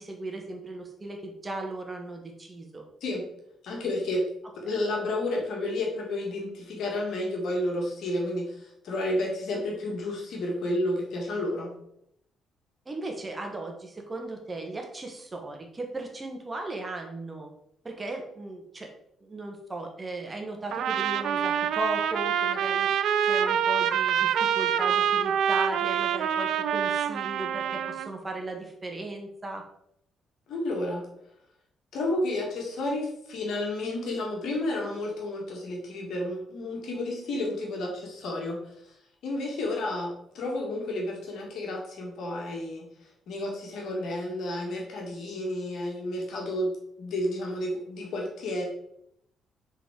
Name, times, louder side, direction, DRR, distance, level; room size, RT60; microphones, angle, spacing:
voice 1, 0.0-2.9 12.8-17.5 17.8-18.9 19.2-22.9 23.2-29.6, right 2 dB, 25° right, 2 dB, 1.6 m, -37 dB
voice 2, 3.6-4.2 4.5-11.7 30.5-31.1 31.9-38.6 39.2-42.9 43.3-48.6, left 1 dB, 55° left, -1 dB, 2.0 m, -31 dB
Trumpet, 20.7-28.1, right 9 dB, 60° right, 0.4 m, -26 dB
6.9 x 4.2 x 4.9 m, 0.75 s
figure-of-eight pair, 40°, 0 cm